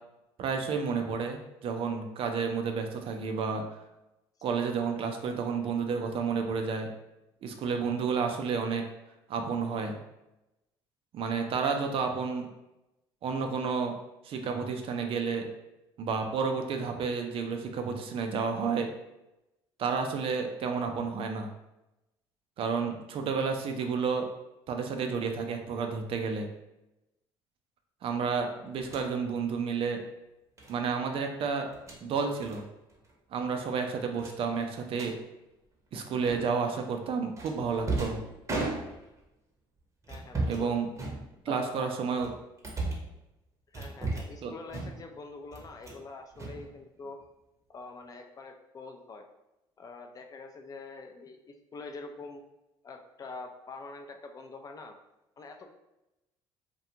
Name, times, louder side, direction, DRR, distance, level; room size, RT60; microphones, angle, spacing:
voice 1, 0.4-3.7 4.4-6.9 7.4-8.9 9.3-10.0 11.1-12.5 13.2-13.9 14.2-15.5 16.0-18.9 19.8-21.5 22.6-24.3 24.7-26.5 28.0-30.0 30.7-31.7 32.0-32.6 33.3-35.2 35.9-38.2 40.5-40.9 41.5-42.3 44.4-44.5, right 5 dB, 50° right, 4 dB, 0.4 m, -31 dB
sound 1, 28.8-29.1 30.6-30.8 31.6-32.0 32.4-32.6 32.9-33.1 33.4-33.5 34.2-35.1 36.2-36.7 37.4-39.2 40.0-40.7 40.9-41.7 42.2-43.1 43.7-44.4 44.7-45.2 45.5-46.0 46.3-47.2, right 2 dB, 25° right, 0.7 m, -36 dB
voice 2, 40.1-40.7 41.5-41.9 43.7-47.2 47.7-49.3 49.8-52.4 52.8-55.0 55.4-55.8, left 3 dB, 30° left, 4 dB, 0.4 m, -45 dB
2.4 x 2.2 x 2.8 m, 0.94 s
hypercardioid pair, 65°, 12 cm